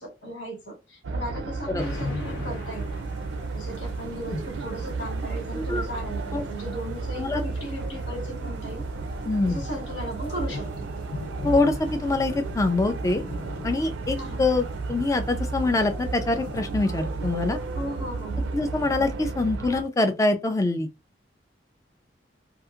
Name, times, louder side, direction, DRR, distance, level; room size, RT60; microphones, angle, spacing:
voice 1, 0.0-3.0 3.5-8.8 9.5-10.9 14.2-14.4 17.7-18.5, equal, 80° left, 1.5 m, -36 dB
sound 1, 1.0-19.8, right 3 dB, 80° right, 0.4 m, -33 dB
sound 2, 1.8-19.6, left 3 dB, 60° left, 0.9 m, -42 dB
voice 2, 5.5-5.8 6.3-6.4 7.2-7.4 9.3-9.6 11.4-13.2 13.6-17.6 18.5-20.9, left 2 dB, 15° left, 0.3 m, -24 dB
2.7 x 2.4 x 2.4 m
head